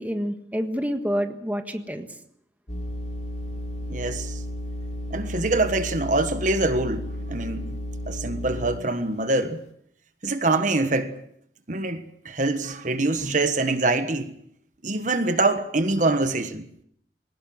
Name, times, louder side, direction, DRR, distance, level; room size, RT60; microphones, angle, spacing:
voice 1, 0.0-2.1, equal, 10° right, 1.5 m, -28 dB
sound 1, 2.7-9.1, equal, 40° left, 3.3 m, -33 dB
voice 2, 3.9-4.4 5.1-7.8 8.1-9.6 10.2-11.2 11.7-14.3 14.8-16.6, right 2 dB, 45° right, 1.4 m, -24 dB
21.5 x 19.0 x 7.9 m
head